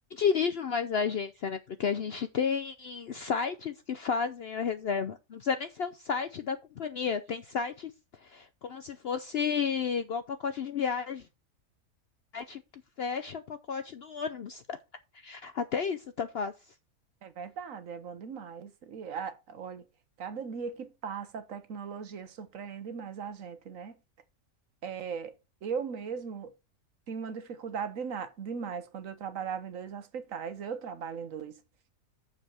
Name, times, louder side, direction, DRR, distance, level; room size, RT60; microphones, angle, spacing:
voice 1, 0.1-7.9 8.2-11.2 12.3-12.6 13.0-14.8 15.1-16.5, left 6 dB, 60° left, 0.6 m, -32 dB
voice 2, 17.2-19.9 20.2-24.0 24.8-25.4 25.6-26.5 27.1-31.6, right 6 dB, 65° right, 1.3 m, -38 dB
6.9 x 5.4 x 6.0 m
omnidirectional pair, 1.6 m